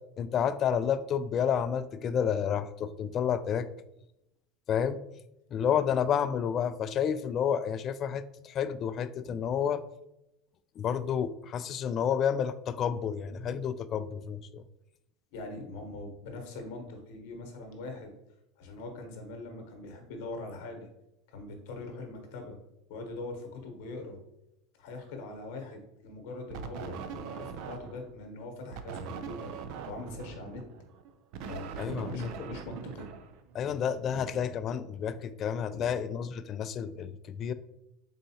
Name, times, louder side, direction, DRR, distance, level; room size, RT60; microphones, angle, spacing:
voice 1, 0.2-3.7 4.7-5.0 5.5-9.8 10.8-14.6 31.8-32.3 33.5-37.5, left 8 dB, 40° left, 13 dB, 0.3 m, -30 dB
voice 2, 15.3-18.2 18.6-20.9 21.3-22.6 22.9-24.2 24.8-29.5 29.9-30.6 31.4-33.1 33.6-33.7 34.1-34.4 35.7-35.9, left 2 dB, 70° left, 4 dB, 1.0 m, -42 dB
sound 1, 26.5-28.1 28.7-33.8, right 6 dB, 65° right, 0.4 m, -41 dB
3.9 x 3.6 x 2.8 m, 0.84 s
hypercardioid pair, 100°, 0 cm